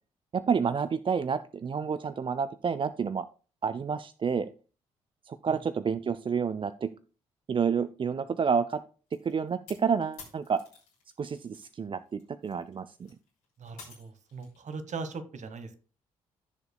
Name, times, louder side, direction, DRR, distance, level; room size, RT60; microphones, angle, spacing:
voice 1, 0.3-3.3 3.6-4.5 5.3-6.9 7.5-8.8 9.1-10.6 11.2-13.1, right 6 dB, 35° right, 14 dB, 0.5 m, -29 dB
sound 1, 9.1-11.7 12.1-14.6, left 5 dB, 75° left, 3.4 m, -52 dB
voice 2, 13.6-15.8, right 4 dB, 50° right, 10 dB, 1.3 m, -39 dB
15.0 x 6.8 x 2.3 m, 0.37 s
hypercardioid pair, 40°, 16 cm